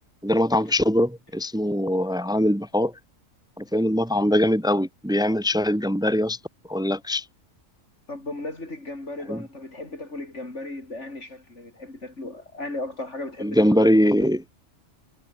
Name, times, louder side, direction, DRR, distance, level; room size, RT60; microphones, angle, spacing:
voice 1, 0.2-2.9 3.6-6.4 6.7-7.3 9.3-9.4 13.4-14.4, equal, 5° right, 2.0 m, -22 dB
voice 2, 8.1-14.3, left 2 dB, 55° left, 5.3 m, -36 dB
omnidirectional pair, 1.4 m